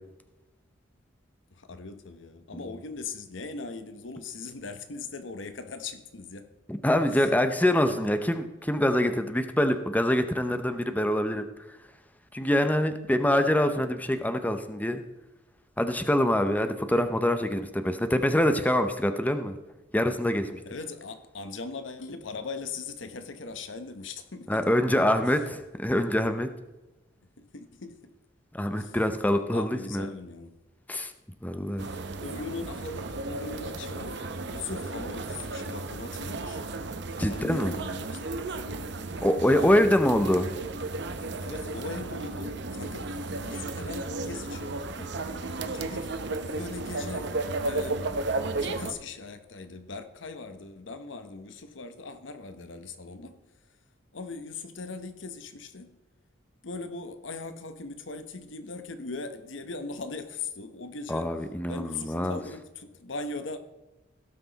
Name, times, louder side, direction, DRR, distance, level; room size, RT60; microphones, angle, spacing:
voice 1, 1.5-6.5 7.1-7.4 20.6-24.7 27.4-28.1 28.8-29.0 29.5-30.6 31.9-36.7 37.2-38.4 39.6-39.8 41.4-45.1 45.7-46.2 46.5-48.1 48.6-53.4 54.1-56.0 56.6-61.3 61.7-63.6, left 3 dB, 90° left, 1.0 m, -40 dB
voice 2, 6.7-11.5 12.3-15.0 15.8-19.6 19.9-20.6 24.5-26.5 28.5-30.1 30.9-31.1 31.4-31.9 37.2-37.7 39.2-40.5 61.1-62.4, left 1 dB, 10° left, 0.7 m, -25 dB
sound 1, 31.8-48.9, right 2 dB, 65° right, 0.8 m, -34 dB
17.0 x 5.9 x 4.0 m
head